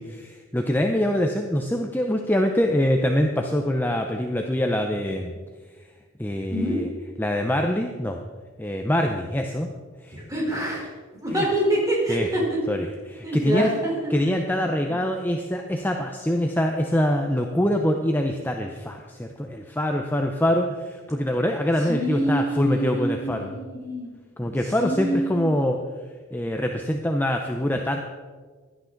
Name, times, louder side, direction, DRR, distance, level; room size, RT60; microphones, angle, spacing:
voice 1, 0.0-5.3 6.2-6.9 7.2-8.2 8.6-9.7 10.0-10.2 11.3-11.5 12.1-12.3 12.7-13.7 14.1-23.5 24.4-25.8 26.3-28.0, left 1 dB, 10° left, 3 dB, 0.6 m, -24 dB
voice 2, 10.1-10.8 11.2-12.4 13.2-14.1 21.9-24.1 24.6-25.6, right 1 dB, 15° right, -4 dB, 3.9 m, -26 dB
16.0 x 11.5 x 3.9 m, 1.5 s
head